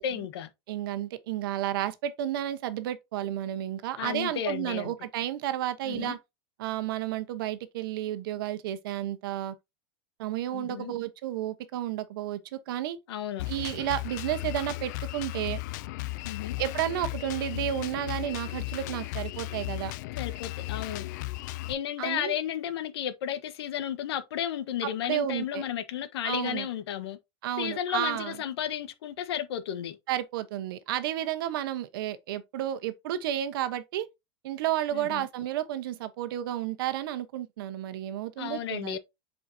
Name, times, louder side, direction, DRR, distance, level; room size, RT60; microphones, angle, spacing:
voice 1, 0.0-0.5 4.0-4.9 5.8-6.2 10.5-10.9 13.1-13.5 16.2-16.6 20.2-21.1 21.7-27.2 27.6-30.0 34.9-35.3 38.4-39.0, left 10 dB, 85° left, 1.4 m, -33 dB
voice 2, 0.7-6.2 6.6-9.5 10.2-13.0 13.5-15.6 16.6-19.9 22.0-22.3 25.1-25.6 26.2-26.7 27.4-28.4 30.1-34.1 34.4-39.0, right 12 dB, 60° right, 1.1 m, -32 dB
Drum kit, 13.4-21.7, left 19 dB, 45° left, 0.4 m, -35 dB
7.7 x 4.9 x 2.8 m
supercardioid pair, 180°, 13 cm